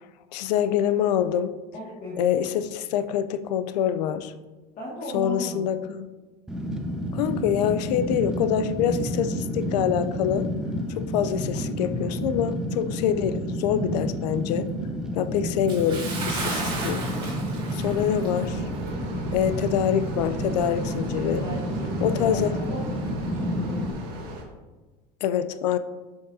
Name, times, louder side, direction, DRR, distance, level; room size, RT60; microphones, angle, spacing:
voice 1, 0.3-1.6 2.2-4.3 5.1-6.1 7.1-10.5 11.0-14.7 15.1-17.1 17.7-18.6 19.3-21.4 22.0-22.6 25.2-25.8, left 9 dB, 90° left, 12 dB, 0.5 m, -25 dB
voice 2, 1.7-2.3 4.8-5.8 21.3-23.9, left 1 dB, 40° left, -6 dB, 1.9 m, -36 dB
Fire, 6.5-23.9, equal, 5° right, 0.6 m, -30 dB
Bathtub (filling or washing) / Splash splatter, 15.7-18.5 18.9-19.0 19.6-19.7, right 3 dB, 25° right, 2.0 m, -34 dB
sound 1, 16.2-24.4, right 2 dB, 55° right, 1.5 m, -38 dB
7.3 x 5.1 x 2.7 m, 1.2 s
supercardioid pair, 125°, 20 cm